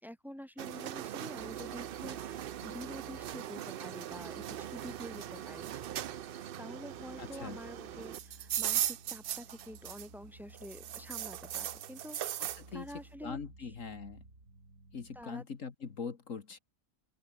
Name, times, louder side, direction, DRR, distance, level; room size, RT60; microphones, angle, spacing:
voice 1, 0.0-5.7 6.6-13.7 15.1-15.4, equal, ahead, 3.9 m, -48 dB
sound 1, 0.6-10.2 10.5-12.6, right 11 dB, 60° right, 0.6 m, -39 dB
sound 2, 1.4-15.2, right 2 dB, 90° right, 6.0 m, -56 dB
voice 2, 7.2-7.6 12.4-12.9 13.2-14.2 14.9-16.6, left 5 dB, 70° left, 2.1 m, -42 dB
open air
omnidirectional pair, 1.4 m